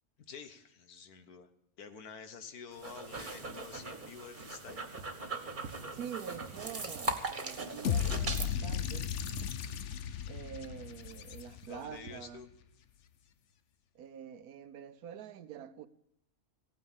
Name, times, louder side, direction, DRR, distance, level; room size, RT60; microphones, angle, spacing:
voice 1, 0.2-1.5 1.8-4.9 11.6-12.5, left 6 dB, 80° left, 1.7 m, -49 dB
sound 1, 2.7-8.5, right 2 dB, 35° right, 1.5 m, -40 dB
sound 2, 4.7-6.1 6.4-7.2 8.3-10.2 10.5-12.7, right 6 dB, 60° right, 1.3 m, -52 dB
voice 2, 5.9-9.1 10.3-12.4 13.9-15.9, right 9 dB, 80° right, 1.3 m, -46 dB
sound 3, 7.8-12.0, left 8 dB, 60° left, 1.0 m, -35 dB
16.5 x 9.4 x 7.3 m
omnidirectional pair, 1.6 m